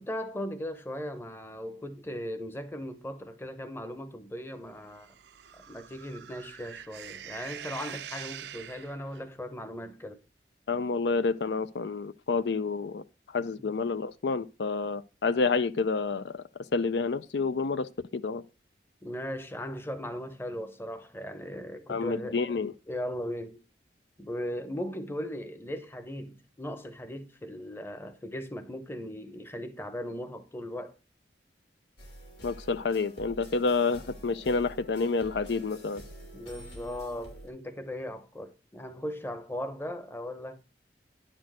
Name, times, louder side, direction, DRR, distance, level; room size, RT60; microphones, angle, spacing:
voice 1, 0.0-5.1 5.5-10.2 13.6-13.7 19.0-22.6 22.9-23.6 24.2-30.9 36.3-40.6, equal, 15° left, 0.9 m, -38 dB
sound 1, 4.9-9.2, right 9 dB, 75° right, 0.5 m, -44 dB
voice 2, 10.7-16.4 16.7-18.4 21.9-22.7 32.4-36.0, left 4 dB, 75° left, 0.5 m, -29 dB
sound 2, 32.0-37.5, right 1 dB, 90° left, 2.6 m, -47 dB
10.5 x 4.5 x 6.0 m
head